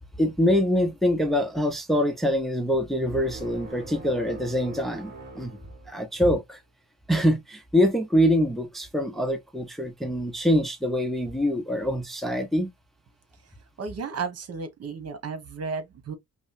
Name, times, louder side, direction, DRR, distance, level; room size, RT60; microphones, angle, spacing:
voice 1, 0.2-5.6 5.9-6.6 7.1-12.7, equal, ahead, 0.7 m, -24 dB
sound 1, 3.0-6.4, right 3 dB, 35° right, 1.4 m, -42 dB
voice 2, 13.8-16.1, right 5 dB, 55° right, 1.3 m, -33 dB
5.3 x 2.1 x 2.6 m
cardioid pair, 90°, 30 cm